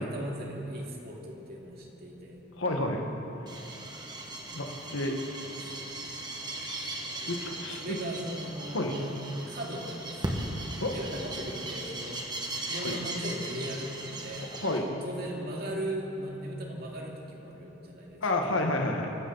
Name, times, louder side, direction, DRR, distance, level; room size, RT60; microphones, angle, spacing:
voice 1, 0.0-2.4 5.4-5.5 7.8-10.4 10.9-12.2 12.7-14.5 14.8-18.8, right 1 dB, 50° right, -1 dB, 2.4 m, -38 dB
voice 2, 2.6-3.0 4.5-5.1 7.3-8.0 8.7-8.9 10.8-10.9 12.8-12.9 14.4-14.9 18.2-19.2, left 2 dB, 80° left, 2 dB, 1.4 m, -30 dB
sound 1, 3.5-14.8, right 1 dB, 20° right, 1.5 m, -38 dB
23.5 x 12.5 x 4.0 m, 3.0 s
head